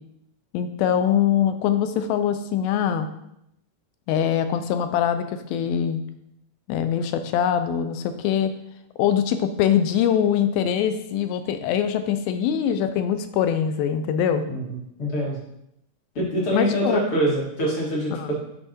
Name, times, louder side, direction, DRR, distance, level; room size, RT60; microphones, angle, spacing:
voice 1, 0.5-3.1 4.1-6.0 6.7-8.5 9.0-14.5 16.5-17.0 18.1-18.3, left 9 dB, 80° left, 9 dB, 2.4 m, -23 dB
voice 2, 14.5-15.4 16.2-18.3, right 1 dB, 40° left, -3 dB, 2.3 m, -25 dB
8.2 x 5.7 x 4.4 m, 0.79 s
omnidirectional pair, 4.4 m